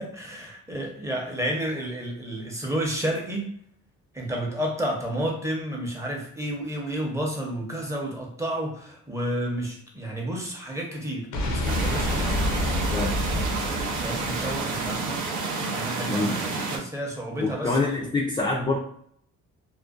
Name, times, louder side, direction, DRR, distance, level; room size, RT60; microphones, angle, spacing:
voice 1, 0.0-3.5 4.1-12.2 13.3-13.6 14.0-15.2 15.7-17.9, right 1 dB, 10° right, -1 dB, 0.7 m, -31 dB
sound 1, 11.3-15.3, left 1 dB, 90° left, 0.6 m, -28 dB
sound 2, 11.6-16.8, right 4 dB, 80° right, 0.6 m, -30 dB
voice 2, 16.1-16.4 17.4-18.8, left 3 dB, 15° left, -2 dB, 0.4 m, -26 dB
2.5 x 2.1 x 2.3 m, 0.63 s
cardioid pair, 90°, 30 cm